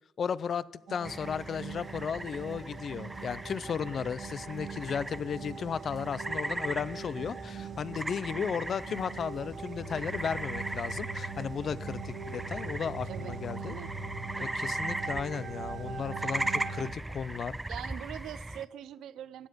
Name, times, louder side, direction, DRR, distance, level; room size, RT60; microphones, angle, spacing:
voice 1, 0.2-13.7 14.4-17.6, left 7 dB, 55° left, 0.5 m, -35 dB
sound 1, 0.9-16.9, right 5 dB, 65° right, 1.4 m, -42 dB
sound 2, 1.0-18.7, right 2 dB, 10° right, 0.5 m, -38 dB
voice 2, 13.0-13.9 17.7-19.5, right 11 dB, 80° right, 0.6 m, -43 dB
15.5 x 9.8 x 5.1 m
cardioid pair, 90°, 0 cm